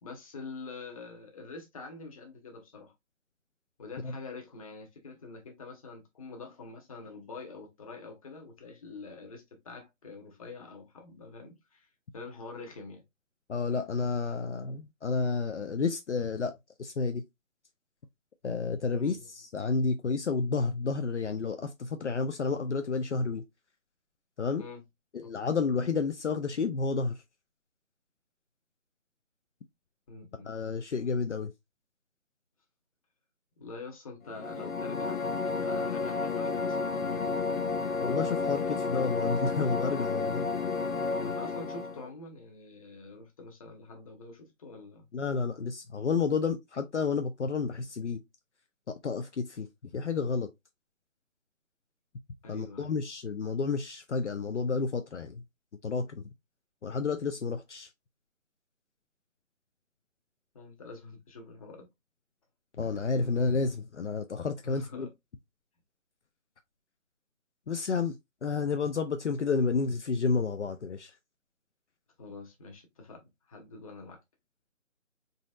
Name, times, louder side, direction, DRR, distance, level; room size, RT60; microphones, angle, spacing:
voice 1, 0.0-2.9 3.8-11.9 12.1-13.0 18.9-19.3 24.6-24.8 30.1-30.5 33.6-37.6 41.1-45.0 52.4-53.0 60.5-61.9 64.6-65.1 72.2-74.2, left 3 dB, 25° left, 1.1 m, -45 dB
voice 2, 13.5-17.2 18.4-23.4 24.4-24.6 25.1-27.2 30.4-31.5 38.0-40.4 45.1-48.2 48.9-49.7 49.9-50.5 52.5-55.4 55.8-56.3 56.8-57.9 62.8-65.1 67.7-68.1 68.4-71.1, left 4 dB, 60° left, 0.7 m, -30 dB
sound 1, 34.3-42.1, left 4 dB, 85° left, 1.1 m, -31 dB
4.1 x 4.0 x 2.4 m
figure-of-eight pair, 155°, 40 cm